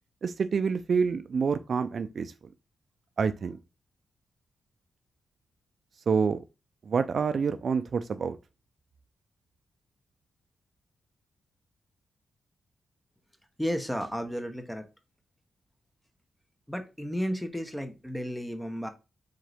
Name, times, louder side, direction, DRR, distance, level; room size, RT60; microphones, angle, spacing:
voice 1, 0.2-2.3 3.2-3.6 6.1-6.4 6.9-8.4, right 5 dB, 55° right, 0.3 m, -27 dB
voice 2, 13.6-14.9 16.7-18.9, equal, 5° left, 0.9 m, -33 dB
3.9 x 3.6 x 3.4 m
cardioid pair, 90°, 0 cm